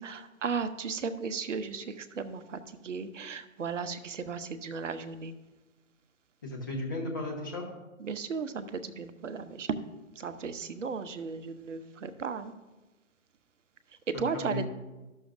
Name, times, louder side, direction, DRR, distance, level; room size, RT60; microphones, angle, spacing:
voice 1, 0.0-5.3 8.0-9.7 10.2-12.5 14.2-14.7, right 5 dB, 60° right, 11 dB, 0.6 m, -36 dB
voice 2, 6.4-7.7 14.1-14.7, left 2 dB, 15° left, -1 dB, 0.6 m, -35 dB
12.0 x 6.3 x 2.5 m, 1.1 s
figure-of-eight pair, 145°, 42 cm